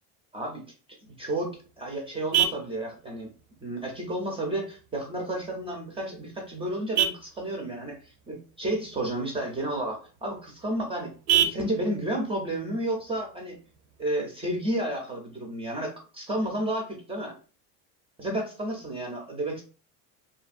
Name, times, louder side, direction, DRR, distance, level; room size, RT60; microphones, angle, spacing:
voice 1, 1.0-3.3 3.6-13.6 14.0-17.4 18.2-19.6, right 1 dB, 15° right, 1 dB, 0.3 m, -31 dB
Vehicle horn car horn honking, 1.1-14.1, right 10 dB, 85° right, 0.6 m, -34 dB
2.6 x 2.5 x 2.4 m, 0.36 s
supercardioid pair, 130°, 45 cm